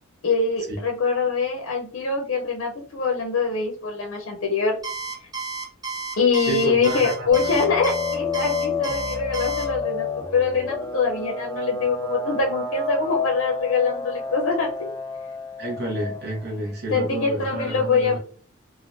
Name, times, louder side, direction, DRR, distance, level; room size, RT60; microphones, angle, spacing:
voice 1, 0.2-4.8 6.2-14.9 16.9-18.2, left 4 dB, 70° left, 1 dB, 0.6 m, -24 dB
Alarm, 4.8-9.7, right 4 dB, 20° right, 0.7 m, -32 dB
voice 2, 6.5-7.3 15.6-18.2, right 1 dB, 50° right, -2 dB, 0.9 m, -29 dB
sound 1, 7.3-16.6, left 4 dB, 20° left, 0.5 m, -29 dB
3.4 x 2.1 x 2.5 m, 0.42 s
head